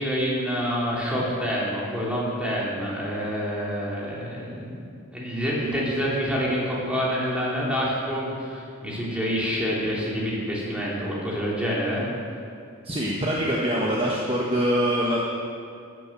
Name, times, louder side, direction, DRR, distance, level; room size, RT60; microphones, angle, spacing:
voice 1, 0.0-4.9 5.1-12.1, equal, 5° right, -6 dB, 3.5 m, -27 dB
voice 2, 12.8-15.3, equal, 25° right, -4 dB, 1.4 m, -24 dB
13.0 x 11.0 x 7.5 m, 2.3 s
head